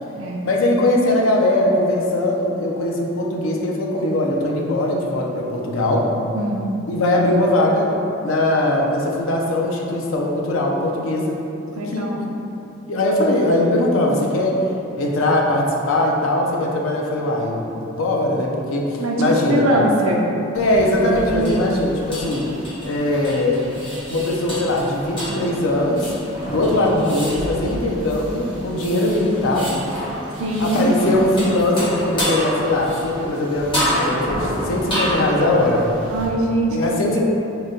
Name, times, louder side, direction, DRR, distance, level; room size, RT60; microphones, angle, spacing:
voice 1, 0.4-6.1 6.9-8.0 8.2-11.4 11.7-12.1 12.9-14.7 15.0-19.7 20.5-22.5 22.8-23.7 24.1-26.1 26.5-29.8 30.6-35.9 36.7-37.2, left 1 dB, 70° left, -1 dB, 0.5 m, -20 dB
voice 2, 6.3-6.7 11.7-12.2 19.0-20.2 21.3-21.7 30.4-30.9 36.1-37.2, right 1 dB, 75° right, -1 dB, 0.5 m, -22 dB
sound 1, 20.6-36.3, equal, 25° left, 0.9 m, -29 dB
3.8 x 2.2 x 3.7 m, 2.8 s
head